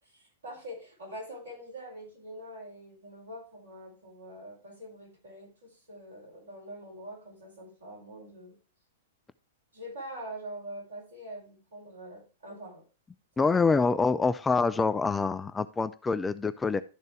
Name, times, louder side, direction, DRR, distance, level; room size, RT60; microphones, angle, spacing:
voice 1, 0.0-8.5 9.7-12.8 13.4-13.5, right 1 dB, 70° right, -2 dB, 5.0 m, -44 dB
voice 2, 13.4-16.8, left 4 dB, 10° left, 14 dB, 0.4 m, -26 dB
12.0 x 4.0 x 4.7 m, 0.33 s
figure-of-eight pair, 105°, 0 cm